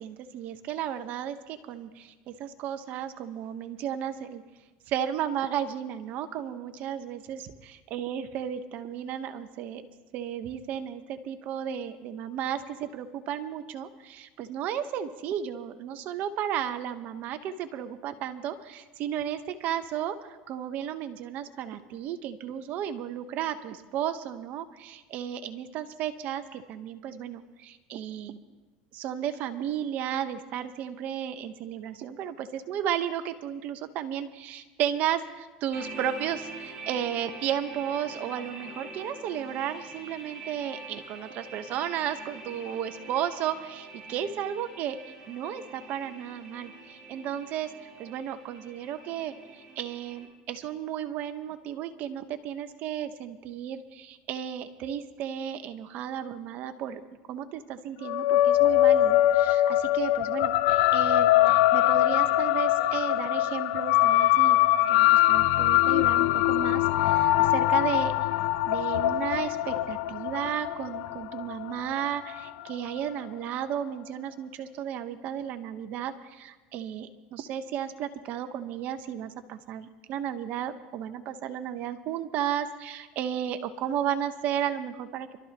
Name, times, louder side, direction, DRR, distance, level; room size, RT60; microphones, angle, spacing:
voice 1, 0.0-4.4 4.9-9.8 10.1-28.4 28.9-45.0 45.3-47.7 48.0-57.0 57.3-64.6 64.9-68.1 68.6-85.4, right 9 dB, 55° right, 9 dB, 1.1 m, -34 dB
sound 1, 35.7-50.2, right 2 dB, 25° right, 6.3 m, -45 dB
sound 2, 58.0-72.7, left 14 dB, 70° left, 0.6 m, -23 dB
26.0 x 13.0 x 3.0 m, 1.2 s
supercardioid pair, 115°, 3 cm